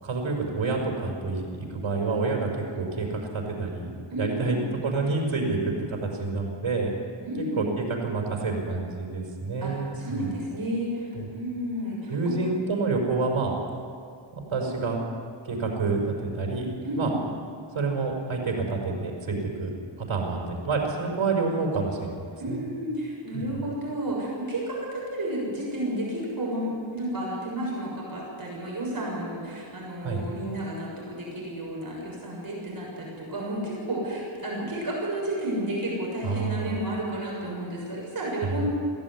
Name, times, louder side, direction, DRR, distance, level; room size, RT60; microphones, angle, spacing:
voice 1, 0.0-6.9 7.6-10.3 11.1-11.3 12.1-13.5 14.3-15.0 15.5-16.7 17.0-17.1 17.7-22.6 23.3-23.6 30.0-30.3 36.2-36.8 38.4-38.5, right 3 dB, 75° right, 0 dB, 5.5 m, -28 dB
voice 2, 4.1-4.7 7.2-7.7 9.6-12.4 16.8-17.2 22.4-38.7, right 1 dB, 45° right, -4 dB, 6.8 m, -32 dB
22.0 x 16.5 x 9.8 m, 2.4 s
wide cardioid pair, 155°, 48 cm